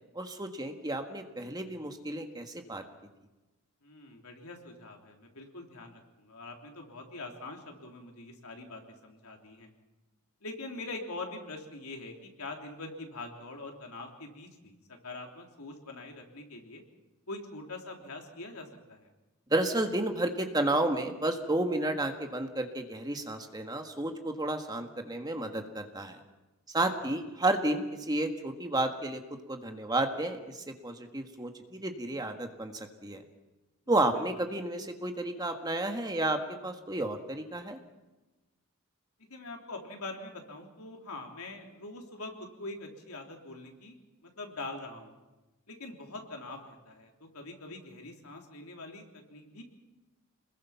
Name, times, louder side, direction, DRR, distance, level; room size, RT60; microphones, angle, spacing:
voice 1, 0.1-2.8 19.5-26.2 26.7-29.2 29.5-33.2 33.9-37.8, right 2 dB, 20° right, 5 dB, 1.7 m, -31 dB
voice 2, 3.8-9.7 10.4-16.8 17.3-19.1 27.0-27.2 34.1-34.3 39.3-45.1 45.7-49.6, left 2 dB, 90° left, 2 dB, 3.5 m, -44 dB
27.5 x 21.0 x 5.9 m, 1.1 s
head